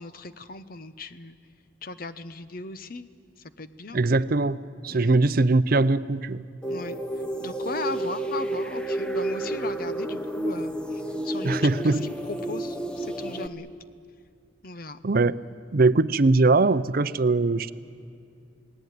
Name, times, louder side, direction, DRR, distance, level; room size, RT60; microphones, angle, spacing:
voice 1, 0.0-1.4 1.8-3.1 3.6-4.0 4.9-5.1 6.7-7.0 7.4-13.7 14.6-15.0, left 3 dB, 50° left, 12 dB, 0.9 m, -37 dB
voice 2, 3.9-6.4 11.4-12.0 15.0-15.4 15.7-17.7, right 3 dB, 50° right, 14 dB, 0.6 m, -21 dB
sound 1, 6.6-13.5, right 1 dB, 5° left, 1.0 m, -30 dB
28.5 x 18.5 x 9.5 m, 2.4 s
head